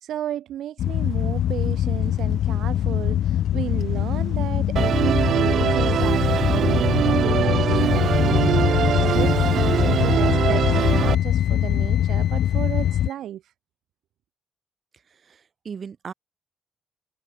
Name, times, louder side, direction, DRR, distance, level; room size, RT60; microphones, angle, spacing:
voice 1, 0.0-13.5, right 11 dB, 90° right, 1.2 m, -33 dB
sound 1, 0.8-13.1, left 11 dB, 85° left, 0.7 m, -22 dB
Musical instrument, 4.8-11.2, right 9 dB, 65° right, 0.6 m, -22 dB
Wind instrument woodwind instrument, 9.7-13.2, left 9 dB, 65° left, 7.3 m, -43 dB
voice 2, 15.1-16.1, right 6 dB, 45° right, 4.1 m, -38 dB
cardioid pair, 130°, 0 cm